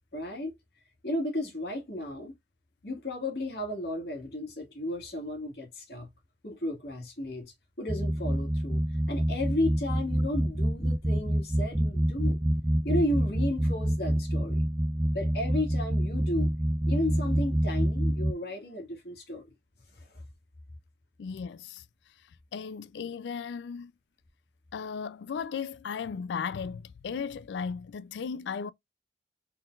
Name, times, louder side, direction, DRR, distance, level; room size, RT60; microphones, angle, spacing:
voice 1, 0.1-0.6 1.0-2.3 2.8-6.1 6.4-12.4 12.8-14.6 15.1-16.5 16.9-19.4 19.9-20.2, left 1 dB, 65° left, 1.9 m, -33 dB
sound 1, 7.9-18.3, equal, 10° right, 0.3 m, -27 dB
voice 2, 21.2-21.8 22.5-23.9 24.7-28.7, left 6 dB, 80° left, 0.3 m, -36 dB
4.2 x 3.8 x 2.4 m
head